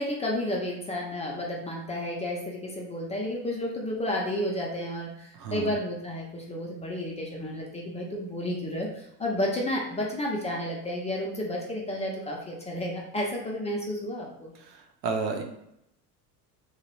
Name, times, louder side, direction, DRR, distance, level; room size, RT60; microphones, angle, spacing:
voice 1, 0.0-14.5, left 1 dB, 15° left, -2 dB, 0.4 m, -31 dB
voice 2, 5.3-5.8 14.6-15.4, right 4 dB, 90° right, 4 dB, 0.7 m, -32 dB
2.7 x 2.0 x 3.0 m, 0.78 s
hypercardioid pair, 85°, 49 cm